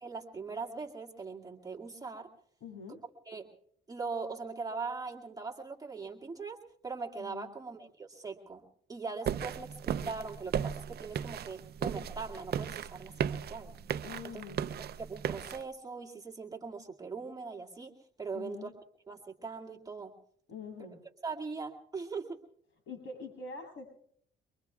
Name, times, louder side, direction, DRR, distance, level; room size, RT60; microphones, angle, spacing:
voice 1, 0.0-2.3 3.3-3.5 3.9-6.6 6.8-8.6 8.9-13.7 14.2-14.4 15.0-17.9 18.2-18.7 19.1-20.1 21.2-22.4, right 4 dB, 20° right, 0 dB, 2.2 m, -40 dB
voice 2, 2.6-3.0 7.2-7.5 14.0-14.6 18.3-18.7 20.5-21.0 22.9-23.9, left 4 dB, 75° left, 3 dB, 7.3 m, -44 dB
sound 1, 9.3-15.6, right 8 dB, 55° right, 0.5 m, -36 dB
24.5 x 23.5 x 2.4 m, 0.66 s
cardioid pair, 90°, 20 cm